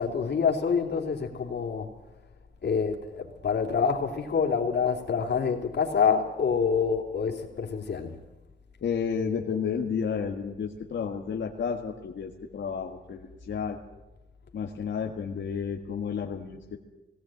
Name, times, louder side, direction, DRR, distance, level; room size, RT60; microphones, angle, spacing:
voice 1, 0.0-2.2 2.6-8.2, left 6 dB, 65° left, 3.2 m, -27 dB
voice 2, 8.8-13.8 14.5-16.8, left 6 dB, 90° left, 1.7 m, -31 dB
19.0 x 17.5 x 9.1 m
wide cardioid pair, 155°, 19 cm